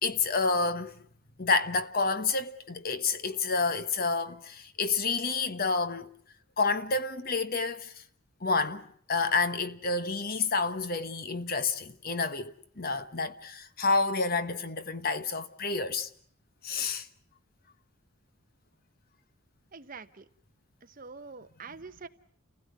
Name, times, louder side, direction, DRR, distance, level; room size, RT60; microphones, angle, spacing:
voice 1, 0.0-0.9 1.4-6.1 6.6-7.9 8.4-8.8 9.1-16.1 16.6-17.1, left 4 dB, 40° left, 1.2 m, -29 dB
voice 2, 19.7-20.2 21.0-22.1, right 4 dB, 40° right, 1.0 m, -45 dB
30.0 x 16.5 x 9.6 m
head